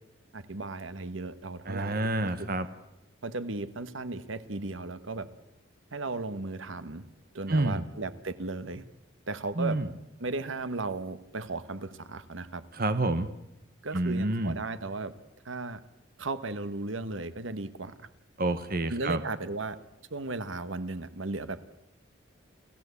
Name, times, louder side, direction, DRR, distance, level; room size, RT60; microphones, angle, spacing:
voice 1, 0.3-1.9 2.2-2.5 3.2-5.3 5.9-7.0 7.3-8.8 9.3-9.8 10.2-12.6 13.8-15.1 15.4-15.8 16.2-17.9 18.9-19.8 20.1-21.6, right 3 dB, 75° right, 13 dB, 1.3 m, -35 dB
voice 2, 1.6-2.7 7.5-7.8 9.6-9.9 12.7-13.3 13.9-14.5 18.4-19.2, right 2 dB, 45° right, 11 dB, 1.1 m, -28 dB
29.5 x 17.0 x 8.3 m, 0.90 s
head